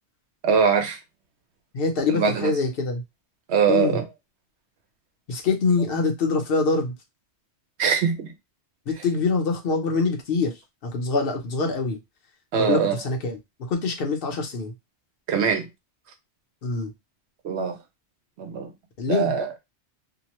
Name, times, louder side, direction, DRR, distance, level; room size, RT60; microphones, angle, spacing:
voice 1, 0.4-1.0 2.1-2.5 3.5-4.0 7.8-8.3 12.5-13.0 15.3-15.7 17.4-17.8 18.4-18.7 19.1-19.5, right 6 dB, 70° right, 1.0 m, -22 dB
voice 2, 1.7-3.0 3.7-4.0 5.3-7.0 8.9-12.0 12.5-14.7 16.6-16.9 19.0-19.6, left 4 dB, 55° left, 0.9 m, -25 dB
2.8 x 2.1 x 2.9 m
omnidirectional pair, 1.2 m